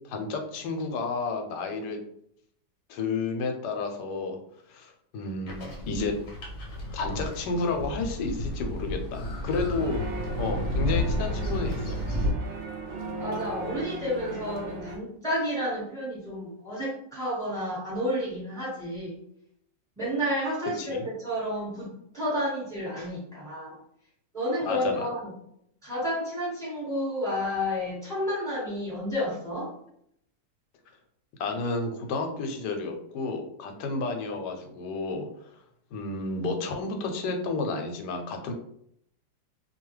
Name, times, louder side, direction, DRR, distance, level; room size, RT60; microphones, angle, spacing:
voice 1, 0.0-2.0 2.9-4.4 4.7-6.2 6.9-10.0 10.4-12.0 20.8-21.1 24.6-25.1 31.4-35.5 35.9-38.5, left 3 dB, 75° left, 4 dB, 1.1 m, -31 dB
sound 1, 5.5-12.3, left 1 dB, 50° left, 0.9 m, -31 dB
sound 2, 9.8-15.0, right 2 dB, 80° right, 0.6 m, -37 dB
voice 2, 13.2-19.2 20.0-23.8 24.3-25.3 25.8-29.7, equal, ahead, -8 dB, 1.1 m, -31 dB
2.7 x 2.3 x 3.1 m, 0.71 s
omnidirectional pair, 1.9 m